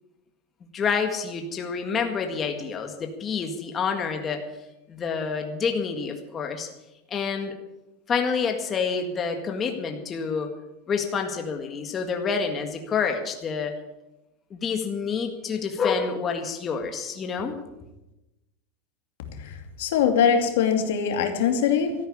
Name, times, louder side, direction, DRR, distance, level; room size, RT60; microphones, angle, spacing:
voice 1, 0.7-4.5 4.9-6.7 7.1-7.6 8.1-10.5 10.9-13.7 14.5-17.6, left 5 dB, 25° left, 4 dB, 1.8 m, -28 dB
voice 2, 19.3-21.9, left 7 dB, 80° left, 5 dB, 2.5 m, -22 dB
13.5 x 10.5 x 8.5 m, 0.96 s
supercardioid pair, 145°, 0 cm